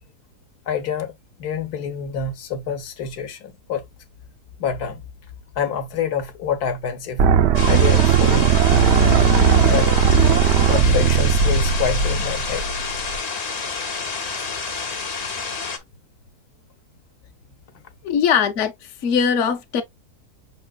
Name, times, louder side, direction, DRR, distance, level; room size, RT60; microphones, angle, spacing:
voice 1, 0.7-1.1 1.4-3.8 4.6-5.0 5.6-7.2 7.7-8.5 9.3-9.9 10.6-12.7, left 7 dB, 75° left, 1.3 m, -27 dB
sound 1, 7.2-13.2, right 6 dB, 80° right, 0.5 m, -17 dB
sound 2, 7.5-15.8, left 4 dB, 40° left, 0.5 m, -29 dB
voice 2, 18.0-18.7 19.0-19.8, left 7 dB, 60° left, 1.0 m, -20 dB
5.7 x 3.9 x 2.2 m
omnidirectional pair, 1.7 m